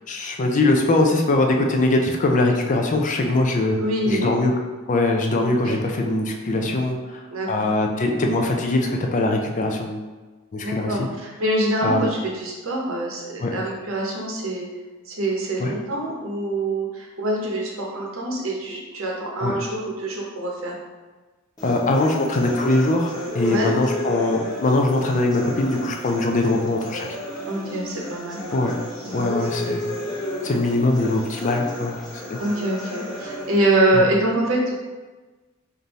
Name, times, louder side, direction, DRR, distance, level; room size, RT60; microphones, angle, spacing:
voice 1, 0.1-3.8 4.1-4.5 4.9-7.2 7.5-10.0 10.5-10.9 11.8-12.0 13.4-13.6 15.6-15.7 19.4-19.5 21.6-27.1 28.5-28.8 29.1-29.8 30.4-32.4 33.9-34.1, left 2 dB, 35° left, 2 dB, 0.4 m, -21 dB
voice 2, 3.8-4.3 5.6-5.8 7.3-7.7 10.6-14.7 15.1-20.7 23.4-23.7 27.5-28.4 29.0-29.3 29.6-29.8 30.4-30.6 32.4-34.7, right 1 dB, 70° right, -2 dB, 0.9 m, -25 dB
sound 1, 21.6-33.6, left 1 dB, 20° left, 0.9 m, -33 dB
3.4 x 2.7 x 4.0 m, 1.3 s
head